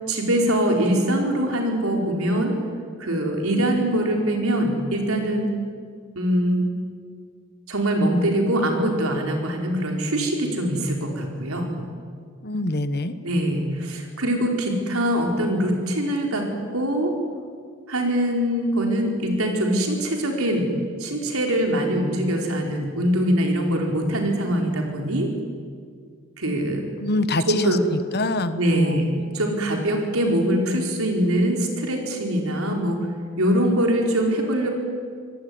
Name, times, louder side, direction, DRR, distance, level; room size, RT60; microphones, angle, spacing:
voice 1, 0.1-2.6 3.0-5.5 6.1-6.6 7.7-11.7 13.2-16.4 16.7-17.1 17.9-20.7 21.0-25.3 26.4-26.8 27.5-27.8 28.6-29.1 29.3-33.0 33.4-34.7, right 1 dB, 85° right, 2 dB, 4.7 m, -23 dB
voice 2, 12.4-13.1 27.0-29.1, left 2 dB, 50° left, 11 dB, 1.3 m, -25 dB
25.5 x 19.0 x 9.6 m, 2.1 s
head